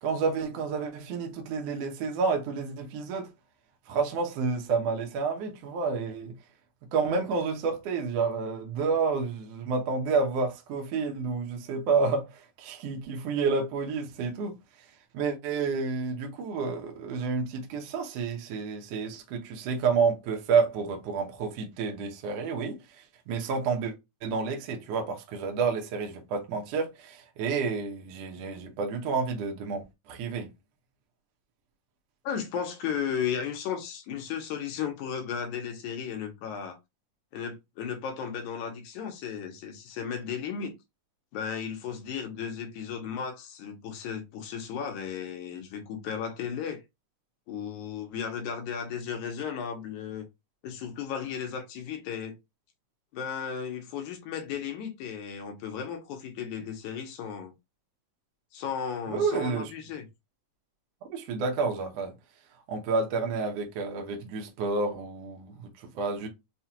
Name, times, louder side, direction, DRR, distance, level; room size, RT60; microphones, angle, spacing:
voice 1, 0.0-3.3 3.9-6.4 6.9-14.5 15.1-23.9 24.2-30.5 59.1-59.7 61.1-62.2 62.7-66.3, right 4 dB, 75° right, 1.5 m, -29 dB
voice 2, 32.2-36.8 37.3-40.8 41.3-46.8 47.5-50.3 50.6-52.4 53.1-57.5 58.5-60.1, left 7 dB, 75° left, 2.1 m, -35 dB
5.7 x 2.3 x 2.8 m
omnidirectional pair, 3.8 m